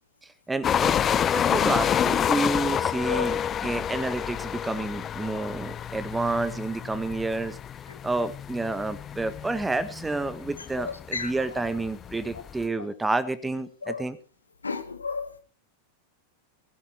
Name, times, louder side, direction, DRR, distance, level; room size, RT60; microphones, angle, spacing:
voice 1, 0.2-7.6 8.0-14.2, right 2 dB, 10° right, 15 dB, 1.4 m, -29 dB
sound 1, 0.6-12.6, left 9 dB, 25° left, 0.7 m, -28 dB
voice 2, 10.8-11.3 13.8-14.0 14.6-15.3, left 4 dB, 75° left, 10 dB, 1.8 m, -32 dB
16.5 x 15.5 x 4.5 m, 0.39 s
figure-of-eight pair, 90°, 0 cm